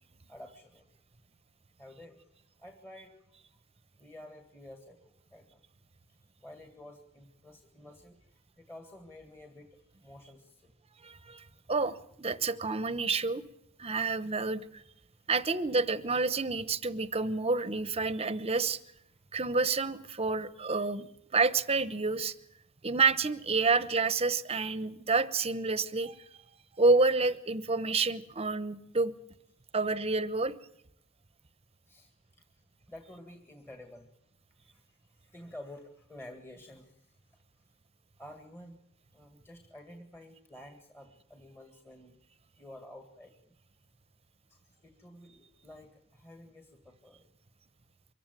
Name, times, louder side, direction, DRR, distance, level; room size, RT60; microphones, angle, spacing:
voice 1, 0.3-0.9 1.8-2.2 2.6-3.2 4.0-5.6 6.4-10.7 31.9-32.1 32.9-34.1 34.6-37.1 38.2-38.8 39.1-42.2 42.6-43.3 44.5-47.3, left 1 dB, 15° left, 5 dB, 1.9 m, -51 dB
voice 2, 11.0-11.4 11.7-13.4 13.8-14.8 15.3-18.8 19.3-22.3 22.8-26.2 26.8-29.1 29.7-30.5, right 3 dB, 30° right, 14 dB, 1.0 m, -29 dB
24.0 x 15.0 x 9.2 m, 0.76 s
head